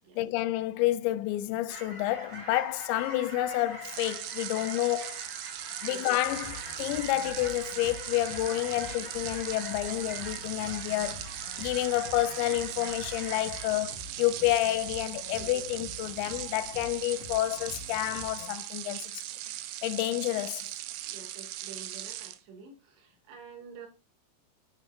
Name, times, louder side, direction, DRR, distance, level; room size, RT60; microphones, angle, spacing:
voice 1, 0.2-5.2 5.8-19.2 19.8-20.7, left 15 dB, 90° left, 3.0 m, -29 dB
sound 1, 1.7-13.7, right 1 dB, 30° right, 0.9 m, -44 dB
sound 2, 3.8-22.4, right 14 dB, 90° right, 2.0 m, -39 dB
sound 3, 6.2-18.5, left 3 dB, 70° left, 2.7 m, -47 dB
voice 2, 21.0-23.9, right 5 dB, 70° right, 4.5 m, -49 dB
10.5 x 7.4 x 2.6 m
omnidirectional pair, 5.1 m